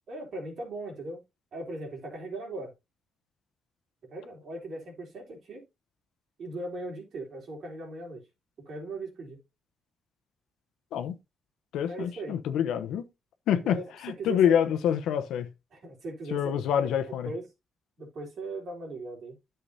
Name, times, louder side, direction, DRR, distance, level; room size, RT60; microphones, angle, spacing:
voice 1, 0.1-1.2 1.5-2.7 4.1-5.6 6.4-8.2 8.7-9.4 11.8-12.4 13.6-13.9 14.2-14.7 15.7-16.5 17.1-17.5 18.0-19.4, right 2 dB, 60° right, 3.6 m, -38 dB
voice 2, 11.7-13.1 13.5-15.5 16.3-17.3, left 9 dB, 85° left, 0.9 m, -27 dB
10.0 x 6.9 x 2.7 m
cardioid pair, 90°, 0 cm